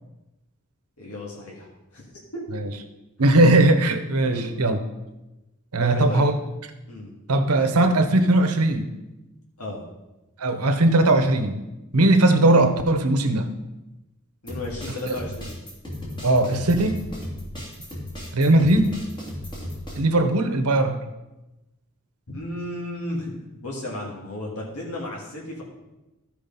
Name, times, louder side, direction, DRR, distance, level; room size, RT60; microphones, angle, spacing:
voice 1, 1.0-1.7 1.9-2.0 2.3-2.5 4.2-4.5 5.8-6.2 6.9-7.1 9.6-9.8 14.4-15.5 22.3-25.6, left 1 dB, 80° left, -4 dB, 2.1 m, -33 dB
voice 2, 3.2-4.8 5.7-6.3 7.3-8.9 10.4-11.6 11.9-13.5 15.0-15.1 16.2-17.0 18.3-18.9 20.0-21.0, right 2 dB, 90° right, 7 dB, 1.0 m, -19 dB
sound 1, 14.5-20.0, left 1 dB, 20° left, 2.7 m, -35 dB
13.0 x 4.9 x 5.4 m, 1.0 s
head